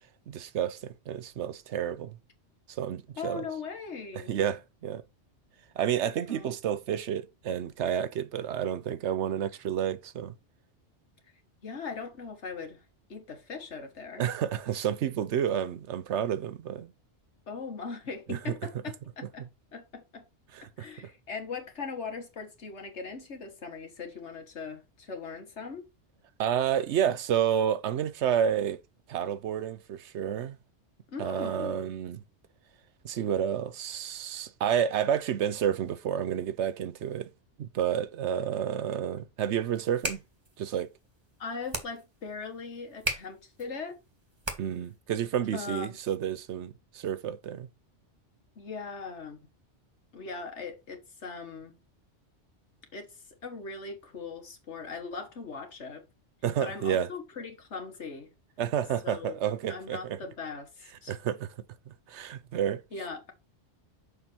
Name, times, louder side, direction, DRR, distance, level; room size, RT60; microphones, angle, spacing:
voice 1, 0.3-2.2 2.7-3.4 4.2-5.0 5.8-10.3 14.2-16.9 18.3-18.5 20.5-20.9 26.4-28.8 29.1-30.6 31.2-32.2 33.0-37.3 37.6-40.2 40.6-40.9 44.6-47.7 56.4-57.1 58.6-60.2 61.1-61.5 61.9-62.8, right 9 dB, 75° right, 1.0 m, -30 dB
voice 2, 3.2-4.3 6.3-6.5 11.6-14.3 17.5-19.5 19.7-20.2 20.6-25.9 31.1-31.8 41.4-44.0 45.5-46.0 48.6-49.4 50.1-51.8 52.9-56.1 56.6-58.3 59.0-59.4 59.7-61.2 62.9-63.3, left 4 dB, 75° left, 1.8 m, -40 dB
sound 1, 39.7-45.0, right 1 dB, 25° right, 1.4 m, -38 dB
6.6 x 5.0 x 4.3 m
omnidirectional pair, 1.2 m